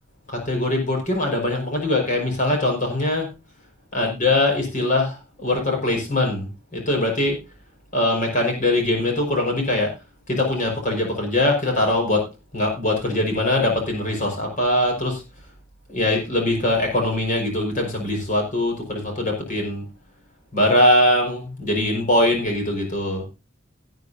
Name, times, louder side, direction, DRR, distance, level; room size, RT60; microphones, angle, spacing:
voice 1, 0.3-3.3 3.9-7.4 7.9-9.9 10.3-12.3 12.5-15.2 15.9-19.8 20.5-23.2, left 1 dB, 40° left, 1 dB, 5.0 m, -22 dB
17.5 x 9.4 x 2.7 m, 0.27 s
head